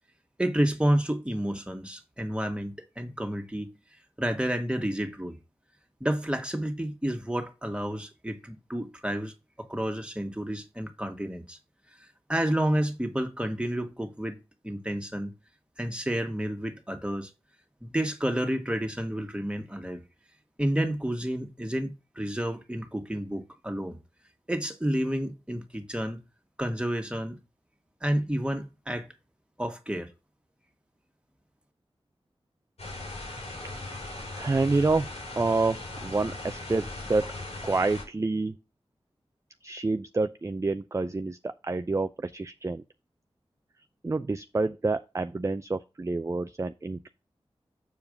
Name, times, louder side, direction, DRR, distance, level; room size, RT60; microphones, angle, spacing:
voice 1, 0.4-3.7 4.2-5.4 6.0-11.6 12.0-14.4 14.6-15.3 15.8-17.3 17.8-20.0 20.6-24.0 24.5-26.2 26.6-27.4 28.0-29.1 29.6-30.1, right 1 dB, 10° right, 1.8 m, -30 dB
sound 1, 32.8-38.0, left 2 dB, 90° left, 3.9 m, -38 dB
voice 2, 34.4-37.3 37.6-38.6 39.6-42.8 44.0-47.1, right 3 dB, 30° right, 0.5 m, -28 dB
7.2 x 4.8 x 5.1 m
cardioid pair, 45°, 10 cm